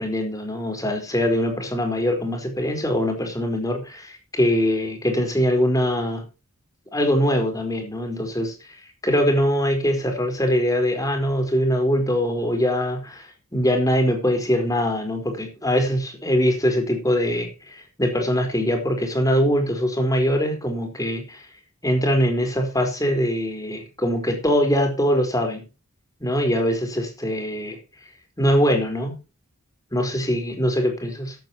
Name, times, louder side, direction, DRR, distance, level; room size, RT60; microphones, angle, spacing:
voice 1, 0.0-6.2 6.9-8.5 9.0-21.4 21.8-25.6 26.2-27.8 28.4-29.2 29.9-31.4, equal, 15° left, 5 dB, 4.4 m, -22 dB
14.0 x 12.5 x 3.0 m, 0.29 s
head